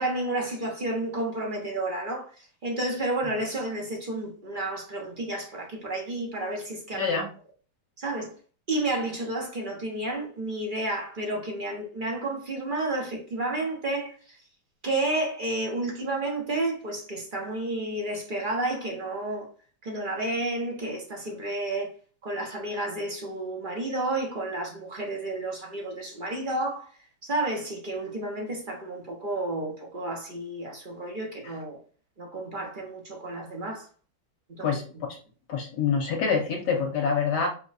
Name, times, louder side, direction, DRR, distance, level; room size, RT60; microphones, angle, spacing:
voice 1, 0.0-7.2 8.0-8.3 8.7-14.1 14.8-19.5 19.8-21.9 22.2-26.9 27.2-31.8 32.2-33.9 34.5-34.8, right 2 dB, 40° right, 0.7 m, -31 dB
voice 2, 6.9-7.3 34.6-34.8 35.5-37.5, left 5 dB, 65° left, 1.2 m, -26 dB
4.6 x 2.3 x 4.0 m
omnidirectional pair, 2.2 m